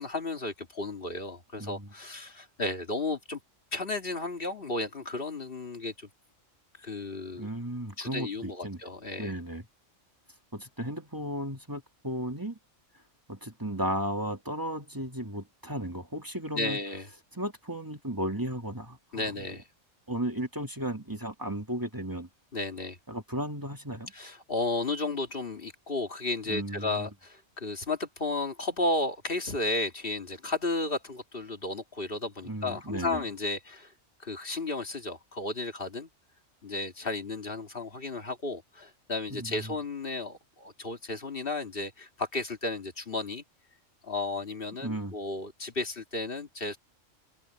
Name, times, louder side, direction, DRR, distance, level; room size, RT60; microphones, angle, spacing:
voice 1, 0.0-3.4 3.7-6.1 6.8-7.5 8.0-9.3 16.5-17.1 19.1-19.6 22.5-23.0 24.1-33.9 34.2-36.1 36.6-43.4 44.0-46.8, left 2 dB, 45° left, 2.3 m, -33 dB
voice 2, 7.4-8.8 9.2-9.6 10.5-12.6 13.3-16.8 17.3-19.5 20.1-22.3 23.1-24.1 26.5-27.1 32.4-33.2 39.3-39.7 44.8-45.1, right 1 dB, 15° right, 2.4 m, -35 dB
omnidirectional pair, 1.3 m